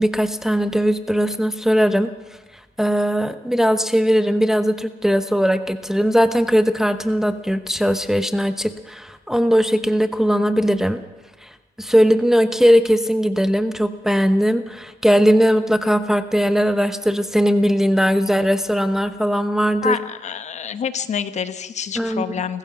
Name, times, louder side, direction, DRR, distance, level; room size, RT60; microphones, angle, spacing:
voice 1, 0.0-2.1 2.8-11.0 11.4-20.0 22.0-22.2, equal, 5° right, 9 dB, 0.9 m, -19 dB
voice 2, 19.8-22.6, left 7 dB, 45° left, 11 dB, 1.2 m, -27 dB
28.5 x 15.0 x 6.1 m, 1.2 s
cardioid pair, 110°, 17 cm